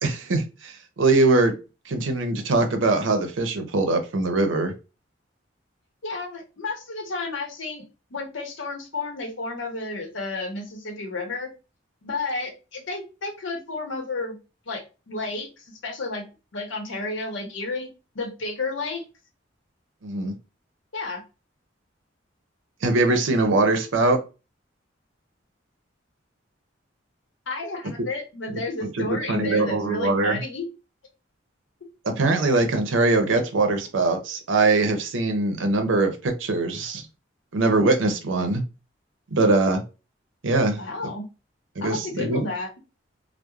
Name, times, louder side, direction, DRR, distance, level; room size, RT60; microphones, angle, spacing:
voice 1, 0.0-1.5 1.9-4.7 20.0-20.3 22.8-24.2 28.5-30.4 32.0-37.0 37.5-38.6 39.3-39.8 40.4-40.8 41.8-42.5, right 2 dB, 85° right, 6 dB, 0.6 m, -22 dB
voice 2, 6.0-7.8 8.1-11.5 12.0-14.4 14.7-16.2 16.5-17.9 18.1-19.0 20.9-21.2 27.5-30.7 31.8-31.9 40.8-41.3 41.8-42.7, left 3 dB, 85° left, 3 dB, 0.8 m, -31 dB
2.3 x 2.0 x 2.9 m, 0.30 s
head